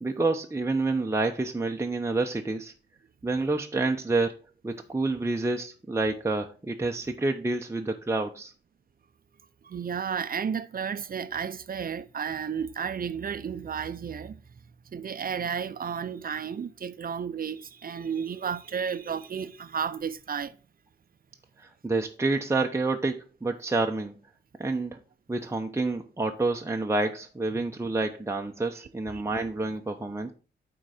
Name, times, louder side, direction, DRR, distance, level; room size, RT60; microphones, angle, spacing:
voice 1, 0.0-2.7 3.2-4.4 4.6-8.5 21.6-24.1 24.6-25.0 25.3-30.3, right 3 dB, 15° right, 0.8 m, -28 dB
voice 2, 9.6-14.4 14.9-20.6 29.1-29.2, right 7 dB, 50° right, 0.6 m, -32 dB
8.9 x 3.9 x 4.9 m
cardioid pair, 70°, 19 cm